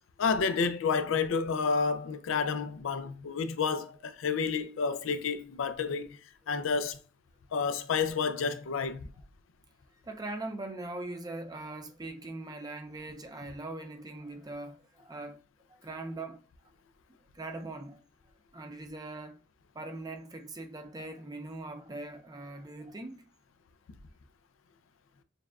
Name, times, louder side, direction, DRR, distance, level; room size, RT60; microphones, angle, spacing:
voice 1, 0.2-6.2 6.5-7.0 7.5-9.0, left 5 dB, 75° left, 0.4 m, -30 dB
voice 2, 10.0-15.4 15.7-16.4 17.3-18.0 18.5-19.4 19.7-23.3, right 2 dB, 20° right, 0.6 m, -41 dB
6.5 x 2.3 x 2.4 m
head